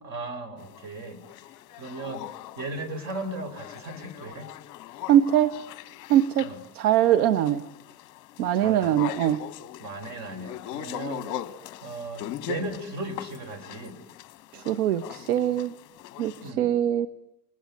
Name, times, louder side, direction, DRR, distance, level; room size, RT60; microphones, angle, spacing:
voice 1, 0.0-1.2 1.7-2.3 2.6-4.5 6.4-6.6 8.5-9.1 9.8-11.3 11.8-14.0 16.3-16.7, right 2 dB, 35° right, 8 dB, 4.9 m, -36 dB
sound 1, 0.6-16.5, left 12 dB, 40° left, 1.5 m, -41 dB
voice 2, 5.1-5.5 6.1-6.5 6.7-7.6 8.4-9.4 14.5-15.7 16.2-17.1, right 11 dB, 65° right, 11 dB, 1.2 m, -22 dB
27.0 x 20.5 x 9.6 m, 0.79 s
hypercardioid pair, 115°, 48 cm